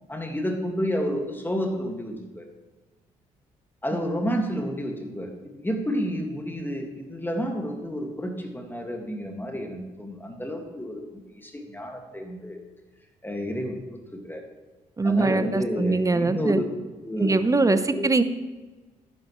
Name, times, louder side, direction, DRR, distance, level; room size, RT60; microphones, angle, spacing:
voice 1, 0.1-2.5 3.8-12.6 13.2-14.4 15.0-16.6 17.0-18.1, equal, 10° left, 2 dB, 2.1 m, -30 dB
voice 2, 15.0-16.6 17.2-18.2, right 3 dB, 20° right, 11 dB, 0.8 m, -22 dB
10.5 x 9.5 x 3.2 m, 1.2 s
hypercardioid pair, 45°, 17 cm